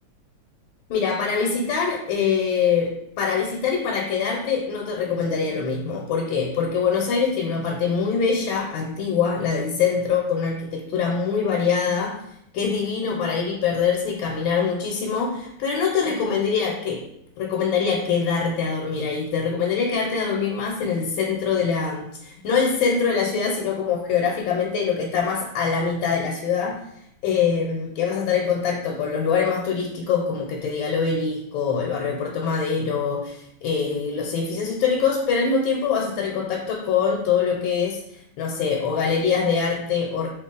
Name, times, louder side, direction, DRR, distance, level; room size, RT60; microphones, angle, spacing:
voice 1, 0.9-12.1 12.5-17.0 17.4-26.8 27.2-40.3, left 6 dB, 80° left, -1 dB, 1.3 m, -24 dB
2.9 x 2.9 x 3.7 m, 0.76 s
omnidirectional pair, 2.1 m